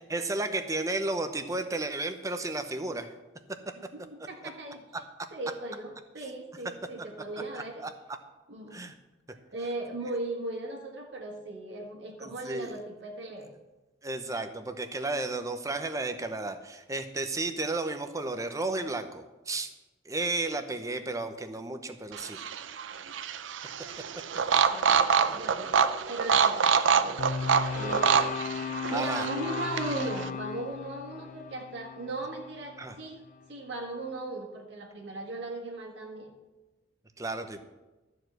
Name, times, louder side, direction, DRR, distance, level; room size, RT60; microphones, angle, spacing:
voice 1, 0.1-3.1 4.9-5.3 7.5-7.9 8.7-8.9 12.2-12.8 14.0-19.7 20.0-22.4 23.9-24.0 28.9-29.3 32.8-32.9 37.2-37.6, right 2 dB, 15° right, 7 dB, 0.8 m, -33 dB
voice 2, 3.7-4.8 5.3-7.8 8.5-8.8 9.5-13.5 24.4-25.8 26.1-27.3 27.7-33.2 33.5-36.3, right 2 dB, 65° right, -1 dB, 1.7 m, -38 dB
sound 1, 22.1-30.3, right 6 dB, 85° right, 0.6 m, -26 dB
sound 2, 27.2-33.4, left 6 dB, 45° left, 0.3 m, -36 dB
13.0 x 4.8 x 7.7 m, 1.1 s
head